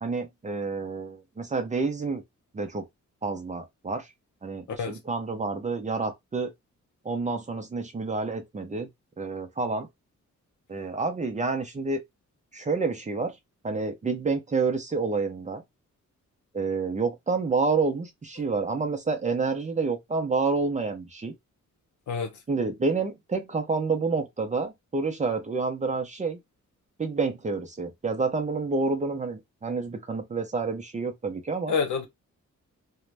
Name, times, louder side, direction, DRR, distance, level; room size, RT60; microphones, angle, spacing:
voice 1, 0.0-2.2 2.5-2.9 3.2-4.1 4.4-6.5 7.0-8.9 9.2-9.9 10.7-12.0 12.5-13.4 13.6-15.6 16.5-21.3 22.5-26.4 27.0-31.7, right 4 dB, 25° right, 0.4 m, -28 dB
voice 2, 4.7-5.0 22.1-22.3 31.7-32.1, left 5 dB, 75° left, 0.8 m, -27 dB
2.5 x 2.1 x 3.2 m
wide cardioid pair, 170°, 30 cm